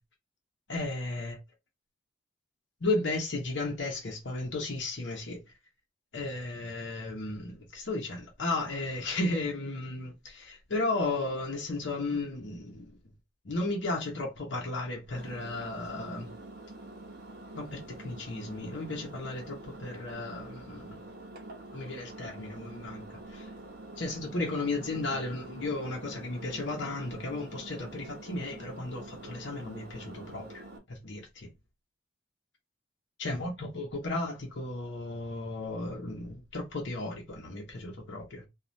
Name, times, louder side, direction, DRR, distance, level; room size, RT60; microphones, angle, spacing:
voice 1, 0.7-1.4 2.8-5.4 6.1-12.9 13.4-16.3 17.5-21.0 21.7-23.5 24.0-30.6 30.9-31.5 33.2-38.5, left 2 dB, 60° left, 0.8 m, -34 dB
Engine, 15.1-30.8, right 2 dB, 50° right, 0.8 m, -46 dB
3.1 x 2.4 x 2.6 m
head